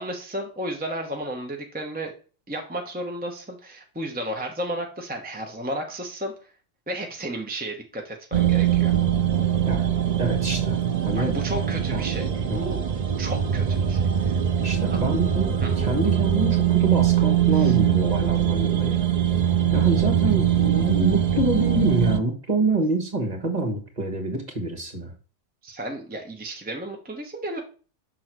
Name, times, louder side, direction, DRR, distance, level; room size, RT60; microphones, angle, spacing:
voice 1, 0.0-2.1 2.5-6.3 6.9-9.0 11.2-12.3 12.5-12.8 13.2-15.0 15.6-15.7 17.5-17.7 25.6-27.6, right 1 dB, 10° right, 2 dB, 0.9 m, -33 dB
sound 1, 8.3-22.2, right 10 dB, 55° right, 0.4 m, -22 dB
voice 2, 10.2-10.8 11.0-11.3 11.9-12.0 12.5-12.6 14.6-19.0 19.7-25.1, right 2 dB, 35° right, 1 dB, 1.6 m, -26 dB
6.3 x 3.9 x 6.0 m, 0.37 s
omnidirectional pair, 1.3 m